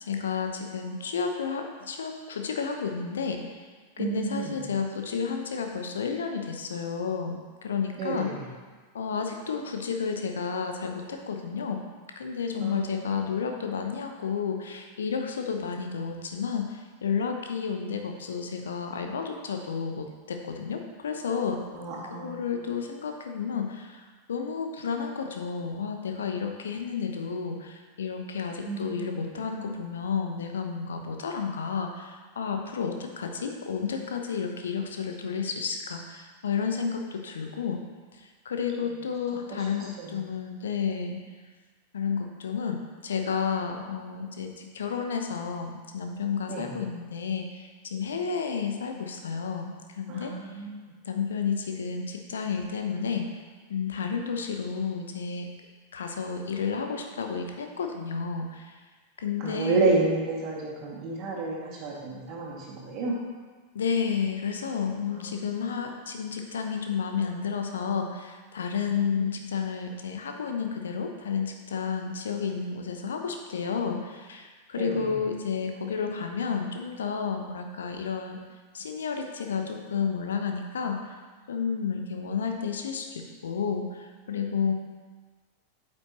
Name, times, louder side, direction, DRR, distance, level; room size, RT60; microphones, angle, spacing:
voice 1, 0.0-3.4 4.0-8.3 8.9-11.8 12.2-21.6 22.2-37.8 38.1-41.2 41.9-42.8 43.0-50.5 51.0-53.3 53.7-55.5 55.9-58.8 59.2-59.9 63.7-78.4 78.7-81.1 81.5-84.7, left 6 dB, 65° left, 4 dB, 0.8 m, -31 dB
voice 2, 4.0-4.6 8.0-8.4 12.6-13.2 21.7-22.4 28.7-29.1 40.0-40.1 46.5-46.8 50.1-50.9 59.4-63.1 65.1-65.5 68.8-69.3 74.8-75.1, right 3 dB, 40° right, -4 dB, 2.3 m, -30 dB
8.7 x 7.6 x 3.1 m, 1.4 s
figure-of-eight pair, 90°, 0 cm